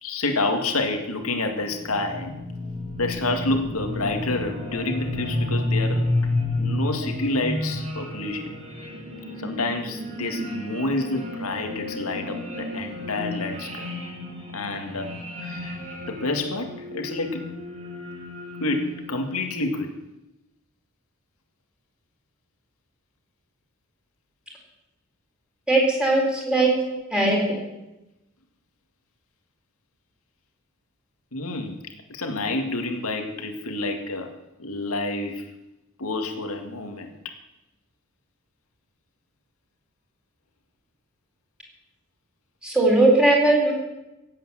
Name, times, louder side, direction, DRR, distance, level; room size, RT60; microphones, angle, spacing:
voice 1, 0.0-2.4 3.0-6.1 6.6-8.5 9.4-13.9 14.5-15.1 15.4-15.8 16.0-17.5 18.6-19.9 26.9-27.0 31.3-34.3 34.6-35.5 36.0-37.3, left 2 dB, 85° left, 5 dB, 2.2 m, -28 dB
sound 1, 1.2-19.5, left 1 dB, 30° right, 5.0 m, -31 dB
voice 2, 25.7-26.7 27.1-27.7 42.6-43.7, right 2 dB, 5° right, -2 dB, 4.2 m, -19 dB
16.5 x 8.7 x 7.7 m, 0.95 s
head